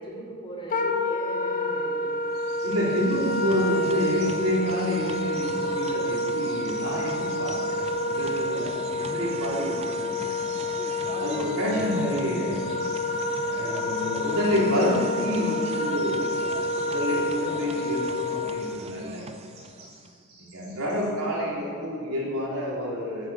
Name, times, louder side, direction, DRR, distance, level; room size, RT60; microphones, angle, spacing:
voice 1, 0.0-2.2, right 1 dB, 25° left, -2 dB, 3.0 m, -38 dB
Wind instrument woodwind instrument, 0.7-18.8, left 2 dB, 40° left, 0.9 m, -29 dB
sound 1, 2.2-20.2, right 3 dB, 30° right, 0.5 m, -41 dB
Bird vocalization bird call bird song, 2.3-21.1, right 3 dB, 50° right, 3.8 m, -49 dB
voice 2, 2.6-10.6 11.2-12.6 13.5-16.4 16.8-19.2 20.4-23.3, equal, 85° right, -4 dB, 3.7 m, -28 dB
11.0 x 10.0 x 7.4 m, 2.2 s
head